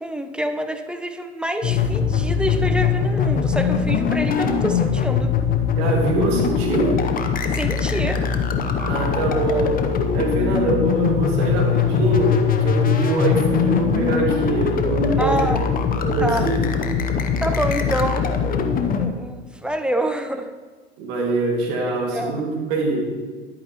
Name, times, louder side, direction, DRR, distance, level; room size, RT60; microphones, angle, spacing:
voice 1, 0.0-5.4 7.5-8.3 15.2-15.6 16.2-16.5 17.4-18.4 19.0-20.5 22.1-22.4, right 1 dB, 5° right, 7 dB, 0.4 m, -26 dB
sound 1, 1.6-19.1, left 6 dB, 25° left, 0.7 m, -21 dB
voice 2, 5.7-7.0 8.8-9.8 10.1-15.6 15.9-16.6 21.0-23.1, right 2 dB, 60° right, -1 dB, 2.2 m, -23 dB
10.5 x 8.7 x 3.0 m, 1.4 s
hypercardioid pair, 95°, 35 cm